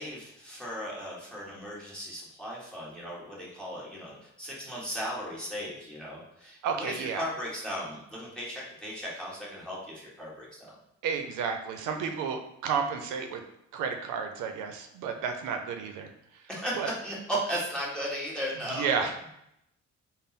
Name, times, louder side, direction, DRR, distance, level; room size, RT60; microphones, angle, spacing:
voice 1, 0.0-10.8 16.5-19.0, equal, 5° left, -6 dB, 1.4 m, -36 dB
voice 2, 6.6-7.2 11.0-13.4 13.7-16.1 16.8-16.9 18.7-19.1, right 6 dB, 85° right, 5 dB, 0.5 m, -31 dB
3.5 x 2.0 x 4.1 m, 0.77 s
cardioid pair, 90°, 30 cm